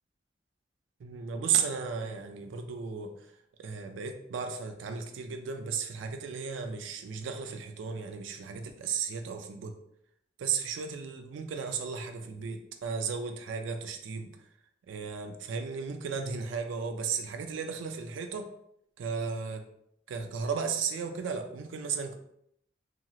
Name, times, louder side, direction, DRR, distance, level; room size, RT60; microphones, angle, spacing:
voice 1, 1.0-3.3 3.6-9.7 10.4-14.3 14.9-18.5 19.0-19.6 20.1-22.2, right 6 dB, 80° right, 5 dB, 0.3 m, -34 dB
2.9 x 2.8 x 2.3 m, 0.74 s
head